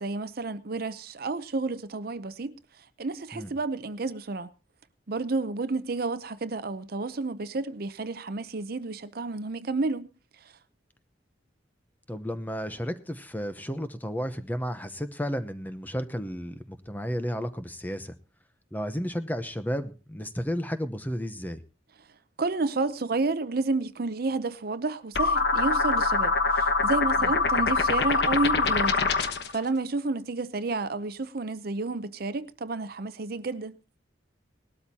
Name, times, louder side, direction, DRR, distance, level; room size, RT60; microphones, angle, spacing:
voice 1, 0.0-2.6 3.0-4.5 5.1-10.1 22.4-29.1 29.5-33.8, right 3 dB, 55° right, 0.7 m, -30 dB
voice 2, 12.1-18.1 18.7-21.6 27.2-27.3, equal, 10° left, 0.9 m, -33 dB
sound 1, 25.1-29.5, left 3 dB, 65° left, 1.2 m, -24 dB
19.5 x 12.5 x 2.8 m
head